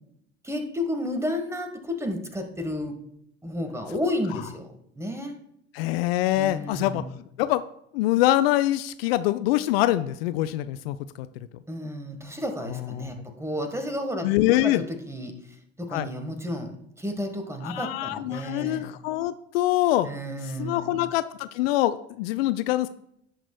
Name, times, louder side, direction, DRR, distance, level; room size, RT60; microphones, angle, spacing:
voice 1, 0.4-3.0 3.4-5.3 6.4-7.1 11.7-14.3 14.6-15.3 15.8-18.9 20.0-21.0, left 1 dB, 10° right, 6 dB, 1.6 m, -32 dB
voice 2, 5.7-7.0 7.4-7.6 7.9-11.3 13.0-13.1 14.2-14.8 15.9-16.1 17.6-20.1 20.4-22.9, left 15 dB, 60° left, 13 dB, 0.5 m, -24 dB
16.5 x 6.0 x 2.3 m, 0.75 s
figure-of-eight pair, 60°, 33 cm